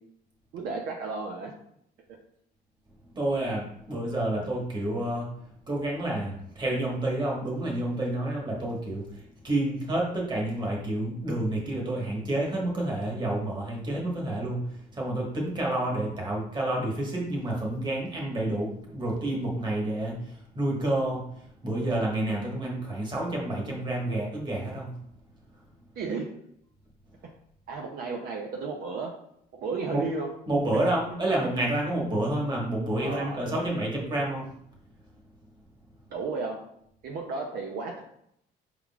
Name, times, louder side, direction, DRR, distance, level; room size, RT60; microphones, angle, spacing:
voice 1, 0.5-1.5 26.0-26.3 27.2-27.3 27.7-29.2 29.5-30.3 30.7-30.8 33.0-33.7 36.1-36.6 37.0-38.0, right 4 dB, 65° right, 1 dB, 0.6 m, -33 dB
voice 2, 3.1-5.4 5.7-24.9 29.9-30.0 30.5-34.5, right 1 dB, 25° right, -2 dB, 1.3 m, -29 dB
4.7 x 3.7 x 2.3 m, 0.73 s
cardioid pair, 110°, 17 cm